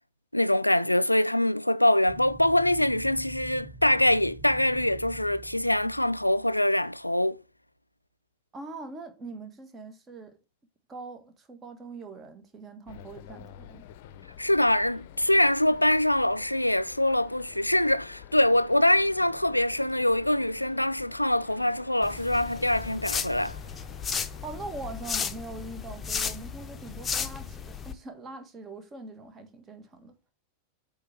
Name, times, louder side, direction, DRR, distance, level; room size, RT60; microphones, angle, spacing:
voice 1, 0.3-7.4 14.4-23.6, left 1 dB, 85° left, 0.3 m, -24 dB
sound 1, 2.1-6.7, right 1 dB, 5° right, 2.9 m, -46 dB
voice 2, 8.5-10.4 10.9-13.9 24.4-30.1, right 3 dB, 20° right, 1.6 m, -42 dB
sound 2, 12.9-25.3, left 10 dB, 50° left, 0.6 m, -49 dB
sound 3, 22.0-27.9, left 6 dB, 20° left, 0.9 m, -34 dB
8.4 x 3.8 x 5.9 m
figure-of-eight pair, 90°, 0 cm